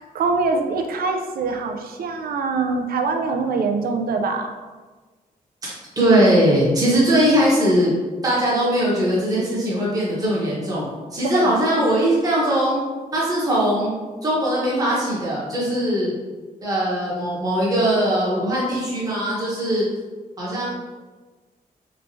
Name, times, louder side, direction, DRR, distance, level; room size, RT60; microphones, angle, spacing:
voice 1, 0.0-4.5 11.3-11.5, right 4 dB, 75° right, 4 dB, 0.4 m, -24 dB
voice 2, 5.6-7.9 8.2-12.8 13.1-16.1 16.6-19.8 20.4-20.7, right 1 dB, 25° right, -7 dB, 0.9 m, -20 dB
3.3 x 3.1 x 2.7 m, 1.4 s
wide cardioid pair, 130°, 16 cm